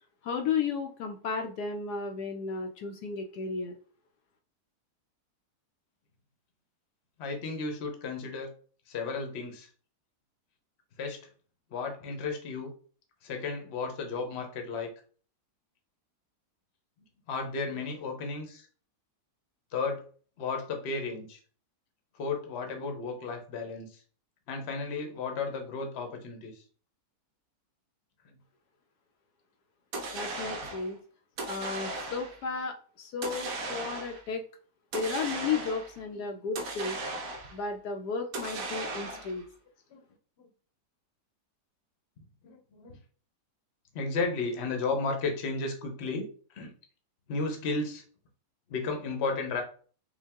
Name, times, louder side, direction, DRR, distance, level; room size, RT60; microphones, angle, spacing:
voice 1, 0.2-3.7 30.1-31.0 31.4-34.4 34.9-37.0 37.5-39.4, left 5 dB, 75° left, 4 dB, 1.1 m, -34 dB
voice 2, 7.2-8.5 8.9-9.7 11.0-11.2 11.7-12.7 13.2-14.9 17.3-18.7 19.7-20.0 20.4-21.4 22.1-24.0 24.5-26.6 35.0-35.1 36.2-36.3 39.1-39.2 39.9-40.0 40.4-40.5 42.4-43.0 43.9-46.7 47.3-48.0 48.7-49.6, left 4 dB, 50° left, 4 dB, 1.0 m, -34 dB
sound 1, 29.9-30.9 31.4-32.4 33.2-34.3 34.9-36.0 36.6-37.6 38.3-39.4, right 2 dB, 60° right, 1.2 m, -37 dB
5.2 x 2.4 x 3.5 m, 0.42 s
omnidirectional pair, 1.8 m